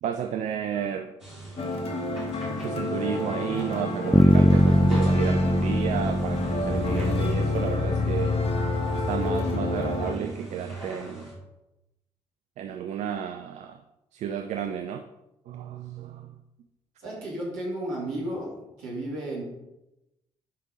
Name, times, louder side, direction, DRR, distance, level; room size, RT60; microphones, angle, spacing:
voice 1, 0.0-1.1 2.6-8.4 9.1-11.3 12.6-13.8 14.1-15.0 15.5-16.3, right 8 dB, 55° right, 7 dB, 0.5 m, -32 dB
sound 1, 1.2-11.3, right 1 dB, 90° right, 1.8 m, -41 dB
sound 2, 1.6-10.2, left 3 dB, 40° left, 1.4 m, -28 dB
Bass guitar, 4.1-8.1, equal, ahead, 0.4 m, -22 dB
voice 2, 17.0-18.5 18.8-19.4, right 1 dB, 70° right, -5 dB, 3.0 m, -33 dB
11.0 x 5.4 x 3.9 m, 0.93 s
figure-of-eight pair, 40°, 15 cm